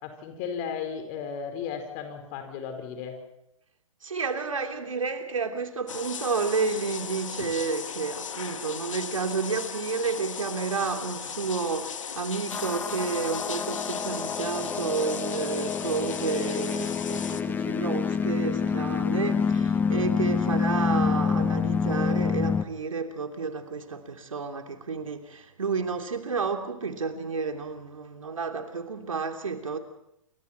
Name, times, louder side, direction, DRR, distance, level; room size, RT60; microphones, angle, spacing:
voice 1, 0.0-3.2, left 7 dB, 35° left, 4.9 m, -35 dB
voice 2, 4.0-29.8, right 5 dB, 75° right, 3.0 m, -31 dB
sound 1, 5.9-17.4, left 7 dB, 70° left, 1.7 m, -37 dB
sound 2, 12.5-22.6, left 6 dB, 10° left, 0.9 m, -27 dB
28.0 x 24.5 x 4.6 m
figure-of-eight pair, 120°, 17 cm